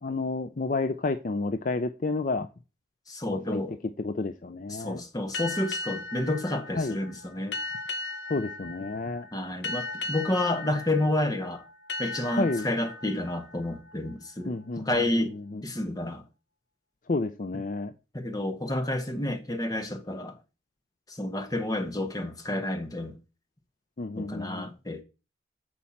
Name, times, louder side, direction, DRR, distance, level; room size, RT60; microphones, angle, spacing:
voice 1, 0.0-2.5 3.3-3.6 4.0-5.0 6.7-7.0 8.3-9.3 12.4-12.7 14.5-15.6 17.1-17.9 24.0-24.7, left 3 dB, 45° left, 0.5 m, -30 dB
voice 2, 3.1-3.8 4.7-7.6 9.3-11.6 12.0-15.3 15.6-16.3 18.1-20.4 21.1-23.2 24.2-25.0, left 1 dB, 20° left, 1.1 m, -30 dB
sound 1, 5.3-14.6, left 2 dB, 70° left, 1.0 m, -38 dB
8.6 x 4.4 x 7.2 m
head